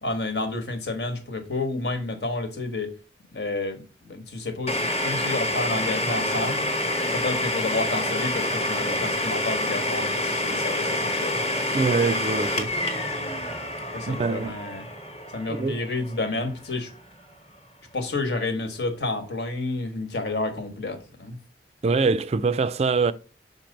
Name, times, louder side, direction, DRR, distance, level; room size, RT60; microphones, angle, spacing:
voice 1, 0.0-2.9 3.3-6.7 7.1-11.4 13.9-14.8 15.3-16.9 17.9-21.4, left 2 dB, 70° left, 1.3 m, -30 dB
Domestic sounds home sounds, 4.7-16.3, left 1 dB, 35° left, 1.1 m, -27 dB
voice 2, 11.7-12.7 14.1-14.5 15.6-15.8 21.8-23.1, right 4 dB, 35° right, 0.3 m, -23 dB
5.6 x 4.5 x 5.2 m
head